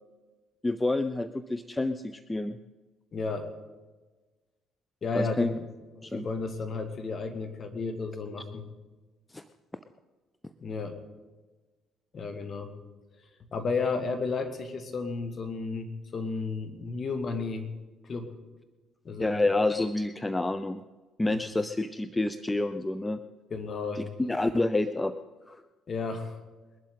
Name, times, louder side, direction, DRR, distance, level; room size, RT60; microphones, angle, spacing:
voice 1, 0.6-2.6 5.1-5.6 6.0-6.3 9.3-9.4 19.2-20.8 21.2-23.2 24.0-25.1 25.5-25.6, left 2 dB, 15° left, 11 dB, 0.6 m, -28 dB
voice 2, 3.1-3.5 5.0-5.7 6.1-8.7 10.6-11.0 12.1-12.7 13.5-17.7 18.0-18.3 19.1-19.3 21.3-21.4 23.5-24.1 25.9-26.4, left 4 dB, 45° left, 9 dB, 1.9 m, -33 dB
21.5 x 11.5 x 3.8 m, 1.2 s
hypercardioid pair, 50°, 0 cm